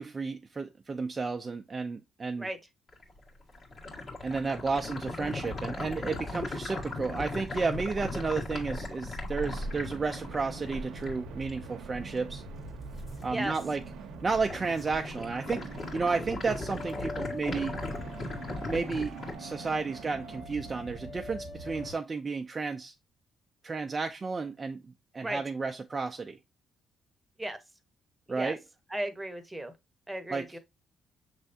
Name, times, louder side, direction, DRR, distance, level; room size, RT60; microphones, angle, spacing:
voice 1, 0.0-2.5 4.2-12.4 13.2-13.8 14.2-17.8 18.6-22.9 23.6-24.8 25.1-26.4 28.3-28.6 30.3-30.5, right 4 dB, 30° right, 0.4 m, -32 dB
sound 1, 2.9-13.2 13.6-14.0 14.3-19.3, left 2 dB, 50° left, 1.8 m, -38 dB
sound 2, 9.5-21.9, right 4 dB, 90° right, 0.7 m, -44 dB
sound 3, 16.6-21.9, left 2 dB, 80° left, 1.7 m, -44 dB
voice 2, 28.9-29.7 30.1-30.6, right 1 dB, 10° right, 0.9 m, -35 dB
6.1 x 3.2 x 2.7 m
cardioid pair, 90°, 0 cm